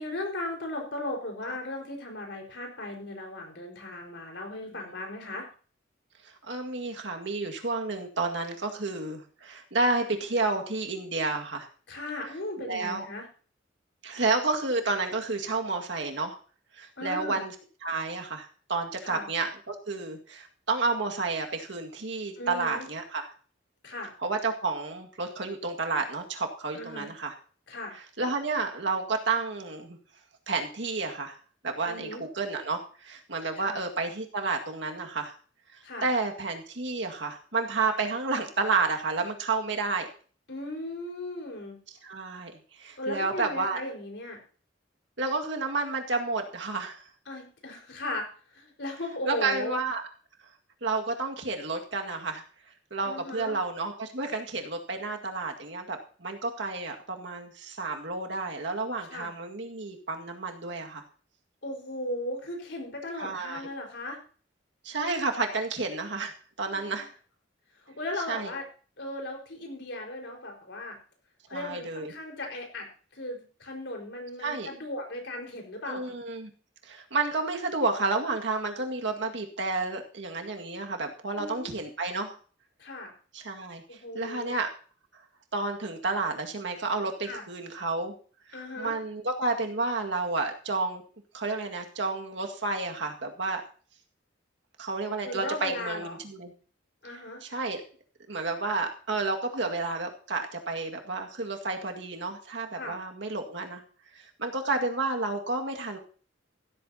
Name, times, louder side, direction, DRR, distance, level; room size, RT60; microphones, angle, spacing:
voice 1, 0.0-5.5 11.9-13.3 17.0-17.4 19.0-19.3 22.4-22.9 23.8-24.1 26.7-27.1 27.7-27.9 31.8-32.2 33.6-33.8 35.8-36.1 40.5-41.8 43.0-44.4 47.3-48.3 48.5-49.8 53.0-53.6 59.1-59.3 61.6-64.2 66.7-67.0 67.9-68.6 69.0-71.0 71.5-72.9 73.1-76.1 81.3-81.8 82.8-83.1 83.9-84.5 87.2-87.4 88.5-88.9 95.2-96.2 97.0-97.4 102.8-103.0, left 1 dB, 65° left, 1 dB, 4.9 m, -37 dB
voice 2, 6.2-11.7 12.6-13.1 14.0-16.4 16.7-17.6 17.8-23.3 24.2-27.3 27.9-30.0 30.5-31.4 31.6-35.3 35.7-40.1 42.0-43.8 45.2-47.1 49.3-50.0 50.8-52.4 52.9-61.0 63.2-63.7 64.8-67.1 68.3-68.5 71.5-72.1 74.4-74.7 75.9-76.5 76.8-82.4 83.3-84.7 85.1-85.2 85.5-88.2 88.8-91.0 91.3-93.6 94.8-96.5 97.4-97.8 98.3-103.8 104.1-106.0, right 3 dB, 65° right, 3 dB, 2.1 m, -31 dB
15.0 x 13.5 x 2.9 m, 0.40 s
head